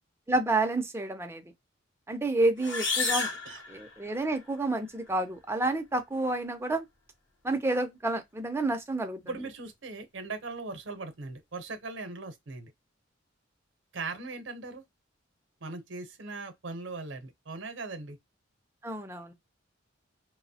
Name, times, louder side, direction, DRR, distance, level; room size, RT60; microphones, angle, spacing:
voice 1, 0.3-1.4 2.1-3.3 3.7-6.9 7.4-9.2 18.8-19.3, right 2 dB, 10° right, 0.4 m, -29 dB
sound 1, 2.6-4.4, left 4 dB, 65° left, 0.8 m, -32 dB
voice 2, 3.1-3.6 9.2-12.7 13.9-14.8 15.6-18.2, right 3 dB, 65° right, 0.6 m, -39 dB
2.9 x 2.0 x 2.7 m
head